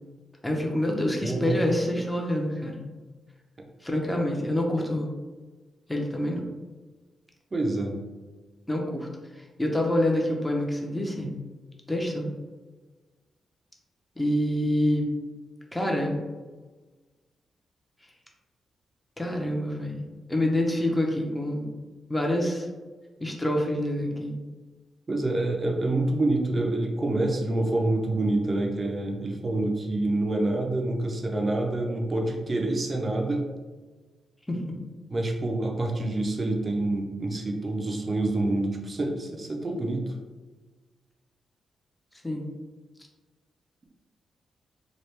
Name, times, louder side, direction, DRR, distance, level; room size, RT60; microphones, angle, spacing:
voice 1, 0.4-2.8 3.8-5.1 5.9-6.4 8.7-11.3 11.9-12.3 14.2-15.0 15.7-16.2 19.2-21.7 22.1-22.7 23.2-24.4 34.5-34.7 42.2-42.5, left 1 dB, 10° left, 0 dB, 0.7 m, -27 dB
voice 2, 1.2-1.6 7.5-8.0 25.1-33.4 35.1-40.1, right 2 dB, 40° right, 2 dB, 0.6 m, -27 dB
3.0 x 2.3 x 3.2 m, 1.3 s
cardioid pair, 65°, 0 cm